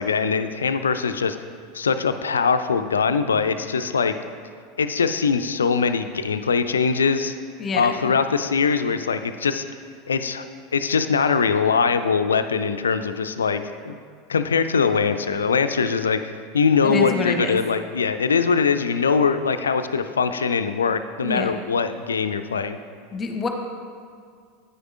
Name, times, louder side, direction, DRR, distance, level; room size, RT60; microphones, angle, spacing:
voice 1, 0.0-1.4 1.7-4.1 4.8-7.3 7.7-9.6 10.1-10.5 10.7-14.0 14.3-16.2 16.5-22.8, left 5 dB, 75° left, 10 dB, 0.3 m, -22 dB
voice 2, 7.6-8.1 16.8-17.6 21.2-21.6 23.1-23.5, left 3 dB, 25° left, 4 dB, 0.9 m, -27 dB
9.4 x 9.4 x 2.5 m, 2.1 s
figure-of-eight pair, 80°, 0 cm